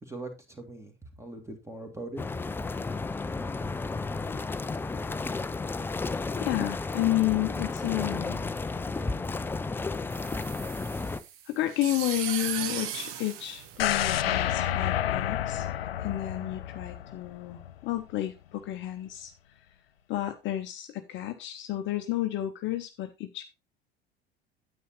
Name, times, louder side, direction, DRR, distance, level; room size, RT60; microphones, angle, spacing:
voice 1, 0.0-2.2, right 2 dB, 10° right, 2.0 m, -41 dB
sound 1, 2.2-11.2, left 3 dB, 5° left, 0.4 m, -33 dB
voice 2, 6.4-8.5 11.5-19.3 20.1-23.4, left 15 dB, 40° left, 0.8 m, -31 dB
sound 2, 10.1-14.5, right 9 dB, 45° right, 1.0 m, -37 dB
sound 3, 13.8-17.8 18.1-18.2, left 11 dB, 75° left, 0.5 m, -29 dB
9.3 x 8.3 x 3.0 m
figure-of-eight pair, 70°, 30 cm